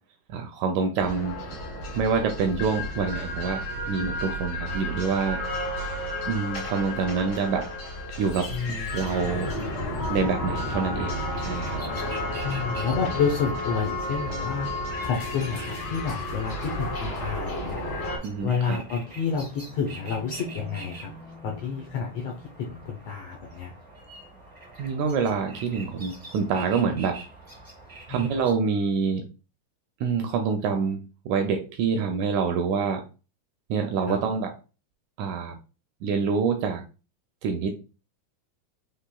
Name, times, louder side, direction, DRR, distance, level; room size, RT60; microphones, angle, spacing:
voice 1, 0.3-1.4 2.0-5.4 6.3-7.7 8.2-8.5 8.9-9.5 10.1-11.8 18.2-18.8 24.8-27.2 28.1-29.2 30.0-33.0 33.7-34.6 35.2-35.5 36.0-36.8 37.4-37.7, right 5 dB, 80° right, 5 dB, 1.7 m, -26 dB
sound 1, 1.0-18.2, left 1 dB, 45° left, 2.1 m, -32 dB
voice 2, 8.5-9.0 12.4-14.7 15.0-17.8 18.4-21.1 21.4-23.7 28.1-28.4 34.1-34.2, left 6 dB, 75° left, 0 dB, 1.5 m, -29 dB
sound 2, 11.0-28.5, right 2 dB, 25° right, 0.4 m, -46 dB
5.6 x 3.3 x 2.2 m, 0.33 s
omnidirectional pair, 3.7 m